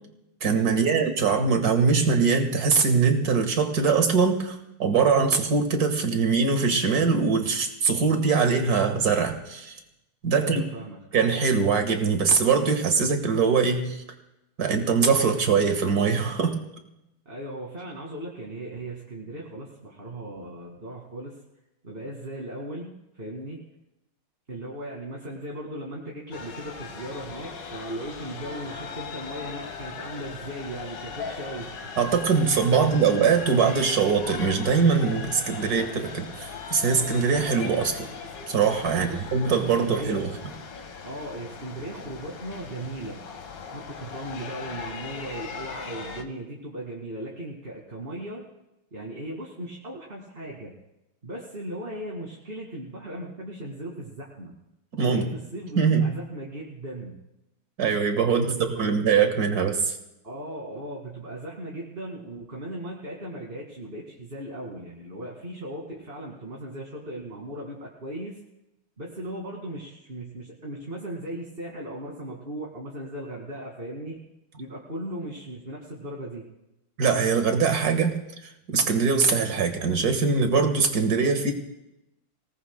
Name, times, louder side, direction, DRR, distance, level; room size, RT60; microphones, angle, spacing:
voice 1, 0.4-9.8 10.2-10.6 11.1-14.0 14.6-16.6 32.0-38.1 38.5-40.3 54.9-55.2 55.8-56.1 57.8-58.5 58.8-60.0 77.0-78.2 78.7-81.5, right 5 dB, 45° right, 6 dB, 1.9 m, -22 dB
voice 2, 10.4-11.0 17.3-21.3 21.8-23.6 24.5-31.7 38.9-39.3 39.7-40.2 41.0-43.2 43.7-48.4 48.9-50.7 51.2-54.5 55.0-57.2 58.3-59.0 60.2-68.4 69.0-74.2 74.6-76.5, right 1 dB, 25° right, -3 dB, 2.2 m, -37 dB
sound 1, 26.3-46.2, left 5 dB, 55° left, 1.9 m, -39 dB
26.0 x 18.5 x 2.2 m, 0.90 s
omnidirectional pair, 2.4 m